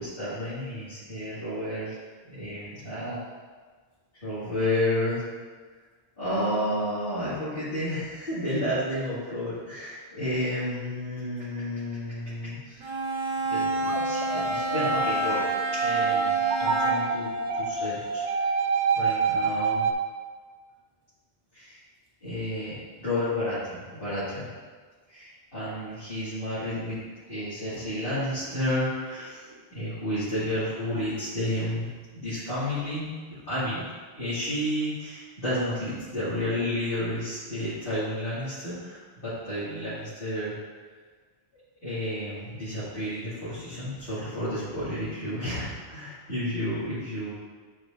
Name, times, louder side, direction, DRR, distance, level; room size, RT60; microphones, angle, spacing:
voice 1, 0.0-2.0 2.2-3.2 4.1-5.2 6.2-12.8 13.5-15.4 15.7-17.3 17.6-18.2 18.9-19.9 21.5-21.8 22.2-24.5 25.1-27.0 27.3-33.9 34.1-40.5 41.8-47.3, left 1 dB, 55° left, -15 dB, 2.3 m, -31 dB
Bowed string instrument, 12.8-17.3, right 2 dB, 35° right, 0.5 m, -28 dB
sound 1, 13.9-19.9, right 5 dB, 85° right, 0.9 m, -27 dB
9.8 x 4.7 x 2.6 m, 1.5 s
omnidirectional pair, 1.1 m